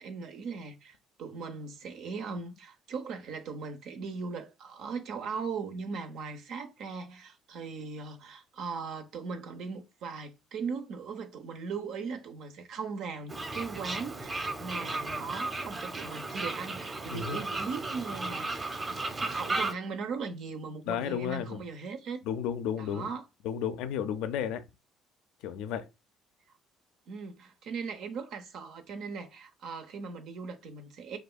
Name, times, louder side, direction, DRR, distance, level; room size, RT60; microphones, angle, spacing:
voice 1, 0.0-22.2 22.8-23.2 27.1-31.2, right 5 dB, 70° right, 0.6 m, -39 dB
Fowl, 13.3-19.7, right 2 dB, 30° right, 0.7 m, -35 dB
voice 2, 20.9-21.6 22.3-23.1 23.4-24.6 25.4-25.9, left 8 dB, 75° left, 0.4 m, -32 dB
4.9 x 2.3 x 2.2 m
hypercardioid pair, 60°, 0 cm